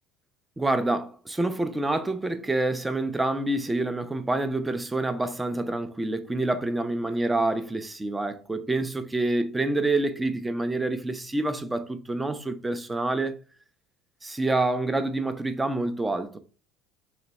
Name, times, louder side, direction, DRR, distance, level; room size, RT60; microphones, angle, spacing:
voice 1, 0.6-13.4 14.2-16.4, right 2 dB, 10° right, 0.4 m, -27 dB
3.2 x 3.0 x 4.0 m
cardioid pair, 135°, 0 cm